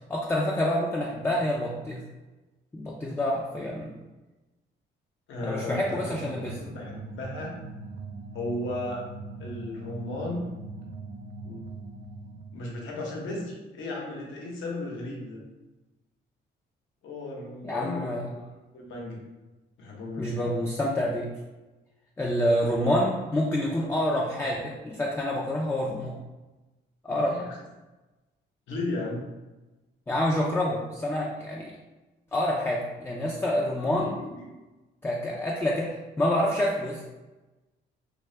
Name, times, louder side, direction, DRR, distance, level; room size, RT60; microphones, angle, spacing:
voice 1, 0.1-2.0 2.7-4.0 5.4-6.5 17.6-18.3 20.2-21.3 22.2-26.2 27.0-27.5 30.1-31.7 32.3-34.1 35.0-37.0, left 1 dB, 10° left, -2 dB, 0.3 m, -27 dB
voice 2, 5.3-7.5 8.3-9.1 9.4-10.5 11.4-11.6 12.5-15.4 17.0-18.5 18.7-19.2 19.8-20.6 27.1-27.6 28.7-29.3 33.9-34.5, left 1 dB, 75° left, -1 dB, 0.8 m, -35 dB
sound 1, 5.3-12.7, right 3 dB, 50° right, 0.4 m, -42 dB
2.7 x 2.2 x 3.2 m, 1.1 s
cardioid pair, 90°, 20 cm